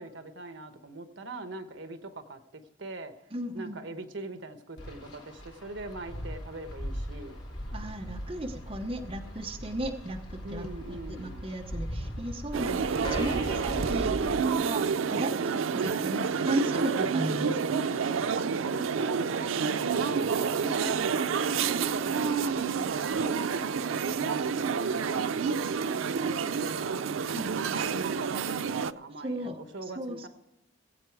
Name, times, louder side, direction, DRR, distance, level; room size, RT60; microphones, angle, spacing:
voice 1, 0.0-3.1 3.5-7.4 10.4-11.5 15.3-15.6 18.4-27.0 27.4-30.3, right 2 dB, 70° right, 8 dB, 1.1 m, -41 dB
voice 2, 3.3-3.8 7.7-17.8 27.3-27.5 29.2-29.6 30.0-30.3, right 1 dB, 25° right, 2 dB, 0.9 m, -36 dB
Wind, 4.8-14.5, equal, 70° left, 3.9 m, -39 dB
sound 1, 12.5-28.9, right 6 dB, 90° right, 0.4 m, -29 dB
sound 2, 13.0-15.0, left 1 dB, 20° left, 0.8 m, -40 dB
20.0 x 8.2 x 4.7 m, 0.92 s
head